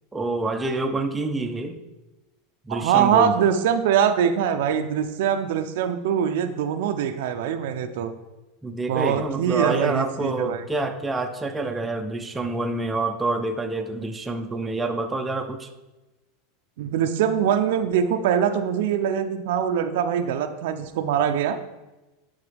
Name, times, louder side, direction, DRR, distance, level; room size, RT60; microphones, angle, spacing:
voice 1, 0.1-1.8 2.7-3.3 8.6-15.7, right 2 dB, 10° right, 5 dB, 0.5 m, -27 dB
voice 2, 2.7-8.1 8.9-10.6 16.8-21.6, right 8 dB, 75° right, 8 dB, 0.5 m, -23 dB
11.0 x 3.8 x 3.4 m, 1.0 s
supercardioid pair, 140°, 0 cm